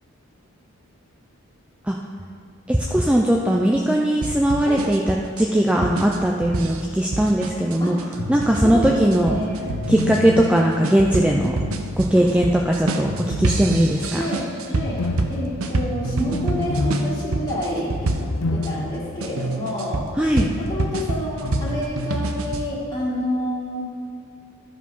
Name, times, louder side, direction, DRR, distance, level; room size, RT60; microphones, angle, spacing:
voice 1, 2.7-8.0 8.3-9.3 9.9-11.6 12.0-13.1 13.4-14.2 20.2-20.5, right 1 dB, 5° right, -1 dB, 0.4 m, -19 dB
sound 1, 4.2-18.7 19.2-22.7, right 2 dB, 80° right, 0.7 m, -28 dB
sound 2, 8.1-8.9 9.6-12.4 13.1-19.3 19.6-19.7 21.4-21.8, left 2 dB, 80° left, 0.6 m, -29 dB
voice 2, 8.6-9.7 12.2-12.3 14.1-15.0 15.3-18.1 18.5-20.0 20.6-23.8, equal, 25° left, -11 dB, 1.9 m, -28 dB
12.0 x 5.0 x 5.4 m, 2.3 s
head